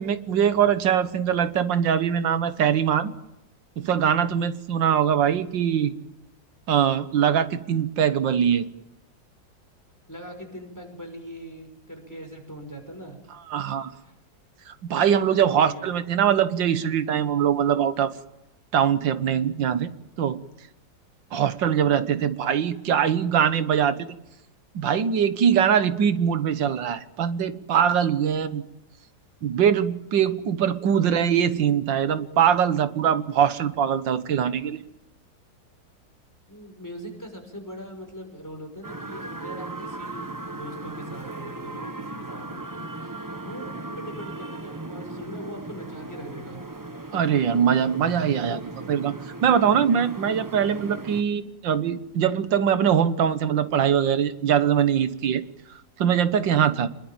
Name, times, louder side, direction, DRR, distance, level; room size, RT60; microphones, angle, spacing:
voice 1, 0.0-3.1 3.8-5.9 6.7-8.7 13.5-13.9 14.7-18.2 18.7-19.9 20.2-20.4 21.3-24.2 24.7-28.6 29.4-34.8 47.1-49.1 49.4-55.4 56.0-56.9, right 8 dB, 85° right, 12 dB, 1.9 m, -22 dB
voice 2, 10.1-13.2 14.0-14.1 14.9-15.9 36.5-42.6 43.4-43.7 44.0-46.6, equal, 10° left, 4 dB, 5.8 m, -41 dB
sound 1, 38.8-51.2, right 2 dB, 15° right, 0.9 m, -37 dB
25.5 x 22.0 x 8.9 m, 0.86 s
omnidirectional pair, 1.9 m